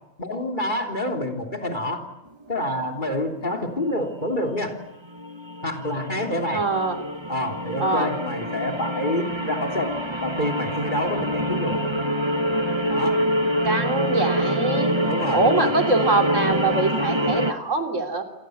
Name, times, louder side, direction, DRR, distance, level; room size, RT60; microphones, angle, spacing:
voice 1, 0.2-2.1 2.5-4.7 5.6-6.6 7.3-9.9 10.2-11.8 12.9-13.2 15.0-15.7, left 1 dB, 35° left, 4 dB, 3.6 m, -27 dB
sound 1, 2.4-2.8 4.6-4.7 5.0-17.5, equal, 20° right, 1.6 m, -26 dB
voice 2, 6.5-7.0 7.8-8.1 13.6-14.9 15.3-18.2, right 2 dB, 60° right, 5 dB, 3.7 m, -23 dB
28.0 x 26.5 x 8.0 m, 0.95 s
omnidirectional pair, 1.4 m